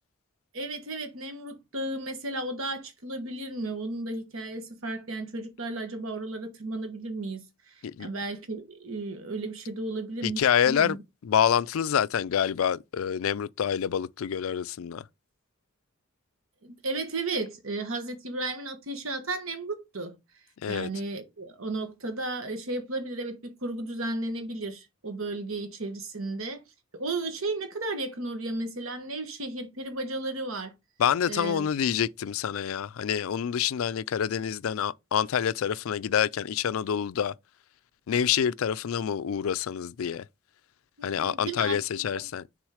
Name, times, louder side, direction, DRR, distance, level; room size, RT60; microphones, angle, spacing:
voice 1, 0.5-7.7 8.0-11.0 16.6-20.2 20.7-26.6 26.9-30.7 31.3-31.7 41.0-42.2, right 2 dB, 80° right, 1.4 m, -34 dB
voice 2, 10.2-11.0 11.2-15.0 20.6-20.9 31.0-37.3 38.1-40.2 41.0-42.4, left 8 dB, 80° left, 0.4 m, -27 dB
6.3 x 3.7 x 4.9 m
head